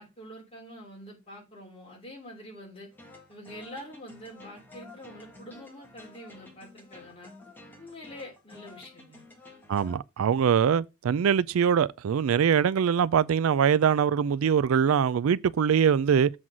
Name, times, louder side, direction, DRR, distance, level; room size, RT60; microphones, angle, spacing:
voice 1, 0.0-2.9 3.3-7.3 7.8-9.2, equal, 25° left, 3.1 m, -45 dB
sound 1, 2.9-10.0, left 2 dB, 10° left, 1.7 m, -51 dB
voice 2, 9.7-16.3, right 7 dB, 80° right, 0.4 m, -23 dB
7.6 x 3.9 x 6.1 m
head